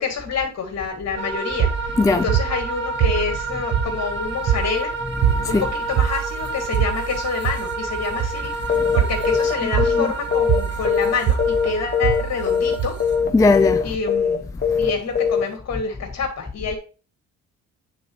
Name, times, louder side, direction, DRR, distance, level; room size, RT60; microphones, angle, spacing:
voice 1, 0.0-1.7 2.1-4.9 5.5-13.0 13.8-14.4 14.8-16.8, left 5 dB, 60° left, 2.5 m, -27 dB
sound 1, 1.2-13.2, right 3 dB, 40° right, 1.8 m, -30 dB
sound 2, 1.6-13.6, right 9 dB, 60° right, 0.8 m, -25 dB
sound 3, 8.7-9.0 9.2-9.5 9.8-11.1 11.4-11.7 11.9-12.2 12.5-12.7 13.0-13.3 13.5-13.8 14.1-14.3 14.6-14.9 15.1-15.4, left 6 dB, 35° left, 1.3 m, -20 dB
voice 2, 13.3-13.9, left 3 dB, 10° left, 0.3 m, -17 dB
9.3 x 4.1 x 3.1 m
cardioid pair, 90°, 30 cm